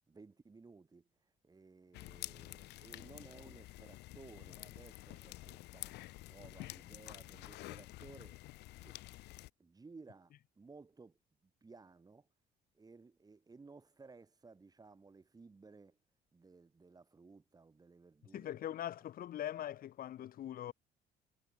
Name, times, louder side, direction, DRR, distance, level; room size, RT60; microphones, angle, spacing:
voice 1, 0.0-6.0 6.3-8.4 8.8-9.0 9.6-11.2 11.6-12.3 12.7-16.0 16.3-18.8, right 4 dB, 20° right, 7.1 m, -58 dB
sound 1, 1.9-9.5, left 18 dB, 85° left, 3.7 m, -49 dB
voice 2, 18.3-20.7, left 11 dB, 60° left, 2.1 m, -42 dB
cardioid pair, 110°, 17 cm